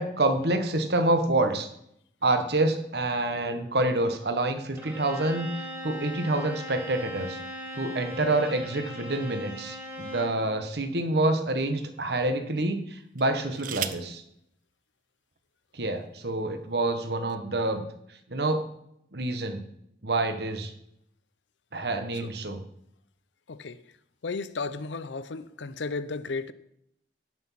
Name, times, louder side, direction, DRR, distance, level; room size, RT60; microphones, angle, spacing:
voice 1, 0.0-1.7 2.2-7.4 7.7-14.2 15.7-17.8 18.3-18.7 19.1-19.6 20.0-20.7 21.7-22.6, right 2 dB, 65° right, 1.3 m, -27 dB
Bowed string instrument, 4.8-10.4, equal, 15° right, 2.5 m, -39 dB
sound 1, 9.4-10.6 11.3-11.5 13.1-14.2 15.3-15.4 15.7-16.1, right 10 dB, 45° right, 0.6 m, -38 dB
voice 2, 23.5-23.8 24.2-26.5, left 4 dB, 85° left, 0.7 m, -34 dB
16.5 x 6.2 x 5.7 m
head